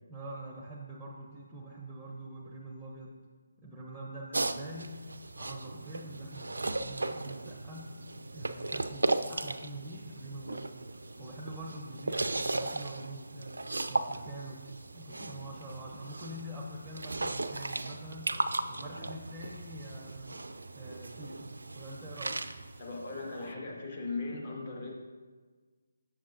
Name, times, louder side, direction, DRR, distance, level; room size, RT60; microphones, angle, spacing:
voice 1, 0.1-3.2 3.6-5.0 5.4-7.9 8.3-10.8 11.2-13.6 13.9-14.6 14.9-20.4 20.7-22.4 22.7-22.8, right 1 dB, 5° right, -1 dB, 0.7 m, -45 dB
sound 1, 4.3-23.5, right 2 dB, 75° right, 0.4 m, -37 dB
voice 2, 22.8-24.9, left 3 dB, 45° left, -2 dB, 1.6 m, -38 dB
7.2 x 7.1 x 2.6 m, 1.4 s
figure-of-eight pair, 150°, 0 cm